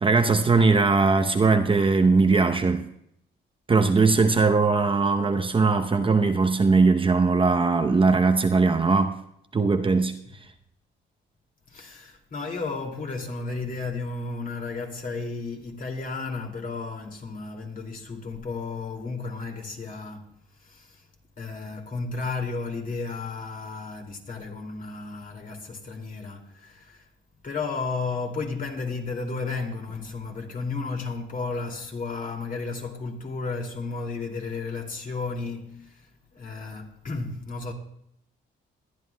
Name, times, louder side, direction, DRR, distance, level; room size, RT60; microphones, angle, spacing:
voice 1, 0.0-2.9 3.7-9.1 9.5-10.1, right 4 dB, 25° right, 0.8 m, -20 dB
voice 2, 11.7-21.1 21.4-27.1 27.4-37.7, left 4 dB, 45° left, 2.5 m, -33 dB
20.5 x 11.0 x 2.3 m
cardioid pair, 90°, 20 cm